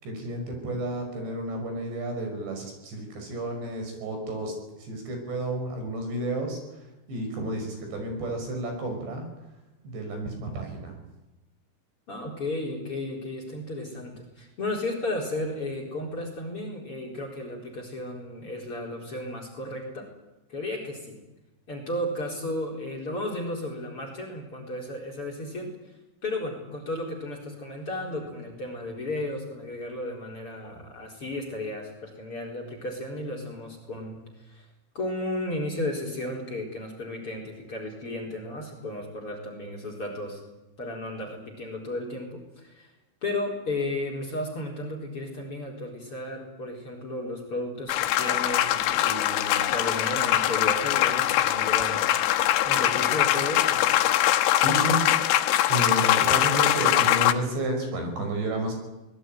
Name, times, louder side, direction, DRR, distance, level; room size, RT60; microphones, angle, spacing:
voice 1, 0.0-9.3 9.8-11.0 54.6-55.3 55.7-58.7, right 1 dB, 65° right, 4 dB, 8.0 m, -31 dB
voice 2, 12.1-20.1 20.5-21.2 21.7-25.7 26.2-34.7 34.9-40.4 40.8-42.9 43.2-52.1 52.6-53.9, left 1 dB, 30° left, 3 dB, 4.7 m, -34 dB
sound 1, 47.9-57.3, left 13 dB, 85° left, 3.6 m, -22 dB
24.5 x 20.5 x 9.4 m, 1.0 s
omnidirectional pair, 5.5 m